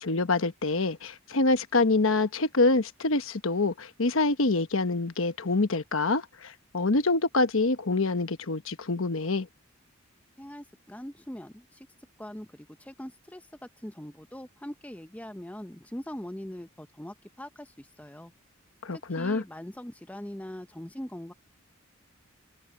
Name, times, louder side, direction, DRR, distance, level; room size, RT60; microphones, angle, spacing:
voice 1, 0.0-9.5 18.8-19.4, left 3 dB, 70° left, 1.1 m, -26 dB
voice 2, 10.4-11.9 12.2-18.3 18.9-21.3, equal, 5° left, 0.8 m, -42 dB
head